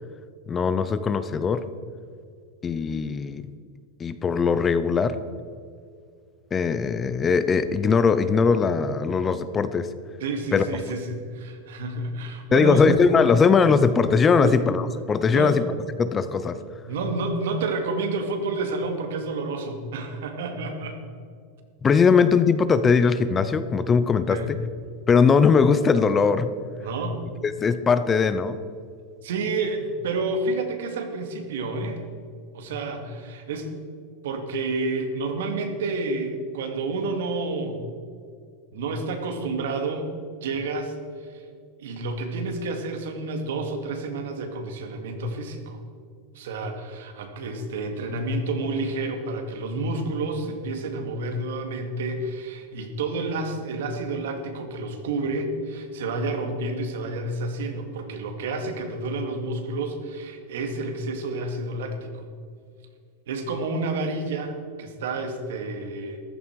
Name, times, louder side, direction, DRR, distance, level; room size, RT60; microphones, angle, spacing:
voice 1, 0.5-1.7 2.6-3.5 4.0-5.2 6.5-9.9 10.5-10.7 12.5-15.7 16.0-16.6 21.8-24.6 25.1-26.5 27.4-28.6, left 5 dB, 15° left, 13 dB, 0.4 m, -20 dB
voice 2, 10.2-12.9 14.4-14.6 15.3-15.6 16.9-21.0 24.3-24.6 26.8-27.2 29.2-32.0 32.5-33.7 34.2-37.8 38.7-40.1 40.4-41.4 41.8-45.8 46.3-62.3 63.3-66.2, right 3 dB, 80° right, 5 dB, 2.2 m, -29 dB
14.5 x 13.0 x 4.7 m, 2.2 s
supercardioid pair, 180°, 0 cm